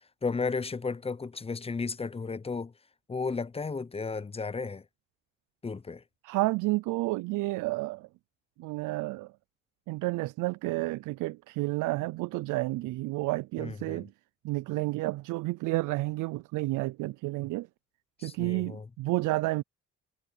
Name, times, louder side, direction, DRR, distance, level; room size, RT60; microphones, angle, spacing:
voice 1, 0.2-2.7 3.1-4.8 5.6-6.0 13.6-14.0 18.2-18.9, left 4 dB, 20° left, 0.7 m, -34 dB
voice 2, 6.2-8.1 8.6-9.3 9.9-14.1 14.4-17.7 18.2-19.6, right 20 dB, 90° right, 0.5 m, -30 dB
cardioid pair, 90°, 30 cm